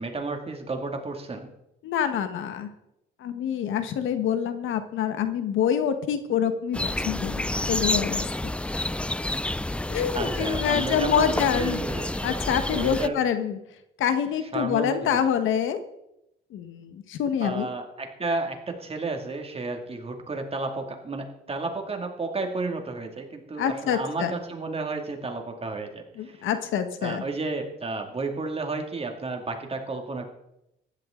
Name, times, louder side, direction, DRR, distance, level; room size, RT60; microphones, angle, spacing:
voice 1, 0.0-1.5 10.1-12.3 12.7-13.2 14.5-15.2 17.4-26.5 27.0-30.3, right 3 dB, 30° right, 3 dB, 2.5 m, -32 dB
voice 2, 1.8-2.7 3.2-8.2 9.9-11.8 12.2-13.6 14.0-15.8 16.5-17.7 23.6-24.3 26.2-27.2, left 8 dB, 80° left, 9 dB, 1.4 m, -26 dB
sound 1, 6.7-13.1, left 1 dB, 5° left, 0.4 m, -29 dB
15.0 x 11.5 x 3.9 m, 0.83 s
cardioid pair, 90°, 20 cm